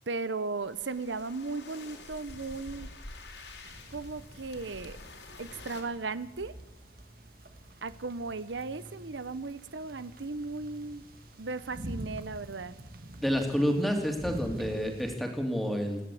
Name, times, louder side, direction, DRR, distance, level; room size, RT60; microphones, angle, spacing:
voice 1, 0.1-2.9 3.9-5.0 5.4-6.5 7.8-11.1 11.4-12.8, right 3 dB, 85° right, 15 dB, 0.9 m, -36 dB
sound 1, 0.6-5.8, left 2 dB, 80° left, 4.0 m, -47 dB
sound 2, 3.6-15.2, right 1 dB, 50° right, 1.9 m, -46 dB
voice 2, 13.2-16.0, equal, ahead, 3 dB, 2.8 m, -29 dB
28.0 x 11.0 x 8.5 m, 1.1 s
head